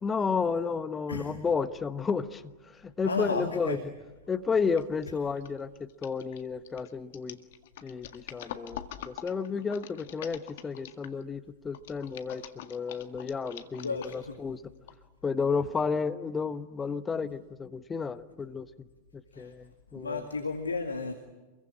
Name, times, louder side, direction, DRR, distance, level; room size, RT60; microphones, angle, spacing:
voice 1, 0.0-3.8 4.3-7.4 7.8-14.6 15.2-18.7 19.1-20.3, left 5 dB, 15° left, 12 dB, 1.2 m, -32 dB
voice 2, 3.0-3.8 13.8-14.3 19.3-19.5 19.9-21.1, left 4 dB, 75° left, 7 dB, 2.1 m, -33 dB
sound 1, 4.8-5.0 5.4-11.2 11.7-14.4 14.9-15.0, left 11 dB, 55° left, 1.8 m, -44 dB
28.0 x 22.5 x 8.9 m, 1.2 s
figure-of-eight pair, 90°, 0 cm